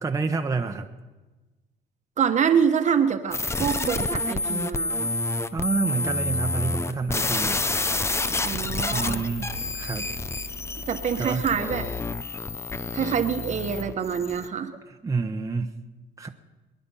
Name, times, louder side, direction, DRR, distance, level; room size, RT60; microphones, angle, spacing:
voice 1, 0.0-0.9 5.5-7.6 8.9-10.1 11.2-11.5 14.9-15.7 16.2-16.3, right 4 dB, 20° right, 3 dB, 1.1 m, -28 dB
voice 2, 2.2-5.1 8.4-9.2 10.9-11.9 12.9-14.7, right 7 dB, 45° right, 8 dB, 1.3 m, -25 dB
sound 1, 3.3-14.5, left 2 dB, 15° left, 0.7 m, -29 dB
sound 2, 7.2-13.8, left 4 dB, 35° left, 2.6 m, -38 dB
23.5 x 10.5 x 5.7 m, 1.2 s
cardioid pair, 110°, 17 cm